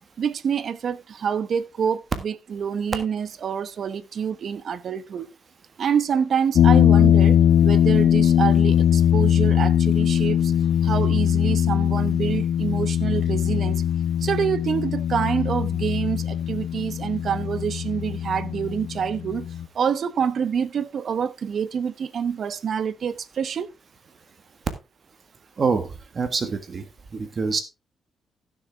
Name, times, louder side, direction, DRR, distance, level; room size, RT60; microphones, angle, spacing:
voice 1, 0.2-5.3 5.8-10.5 10.8-13.8 14.2-19.5 19.7-23.7, right 7 dB, 55° right, 0.9 m, -27 dB
sound 1, 6.6-19.7, left 9 dB, 75° left, 0.7 m, -20 dB
voice 2, 25.6-26.8 27.1-27.6, right 4 dB, 40° right, 1.5 m, -25 dB
15.5 x 6.7 x 3.4 m
cardioid pair, 125°, 0 cm